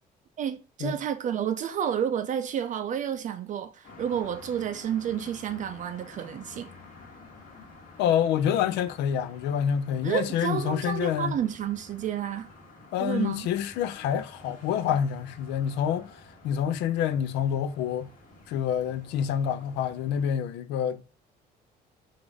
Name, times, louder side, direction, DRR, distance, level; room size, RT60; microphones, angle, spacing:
voice 1, 0.4-6.7 10.0-12.5 13.0-13.5, right 9 dB, 50° right, 0.4 m, -30 dB
sound 1, 3.8-20.3, left 3 dB, 55° left, 1.3 m, -50 dB
voice 2, 8.0-11.4 12.9-18.1 18.5-21.1, left 9 dB, 90° left, 0.4 m, -27 dB
3.9 x 2.5 x 4.6 m
cardioid pair, 110°, 17 cm